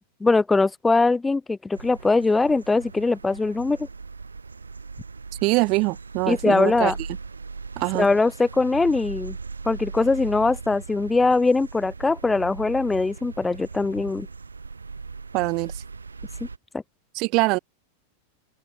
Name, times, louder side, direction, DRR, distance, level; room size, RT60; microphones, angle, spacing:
voice 1, 0.2-3.8 6.3-7.0 7.9-9.4 9.7-14.3 16.7-16.8, left 3 dB, 10° left, 0.5 m, -21 dB
sound 1, 1.7-16.6, right 4 dB, 75° right, 2.7 m, -39 dB
voice 2, 5.4-6.9 7.8-8.1 15.3-15.8 17.1-17.6, right 26 dB, 40° right, 0.8 m, -23 dB
figure-of-eight pair, 90°, 0 cm